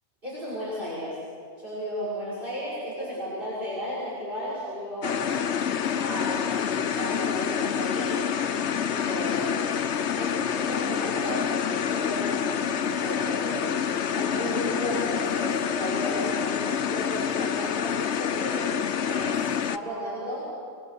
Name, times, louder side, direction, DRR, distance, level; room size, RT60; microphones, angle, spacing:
voice 1, 0.2-1.2 1.6-5.3 5.9-8.2 8.9-9.8 10.1-13.7 14.1-18.7 19.1-19.4 19.7-20.5, equal, 50° right, -8 dB, 6.2 m, -34 dB
sound 1, 5.0-19.8, left 8 dB, 85° left, 1.1 m, -27 dB
29.0 x 21.5 x 6.7 m, 2.3 s
omnidirectional pair, 1.1 m